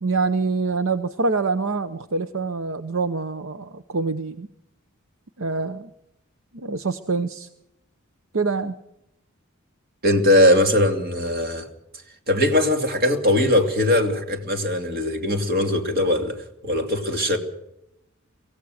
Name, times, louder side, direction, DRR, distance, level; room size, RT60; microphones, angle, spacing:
voice 1, 0.0-4.5 5.4-5.9 6.5-7.5 8.3-8.8, right 4 dB, 65° right, 0.9 m, -25 dB
voice 2, 10.0-11.7 12.3-16.4 16.6-17.4, left 1 dB, 45° right, 2.8 m, -20 dB
24.0 x 16.5 x 6.6 m
head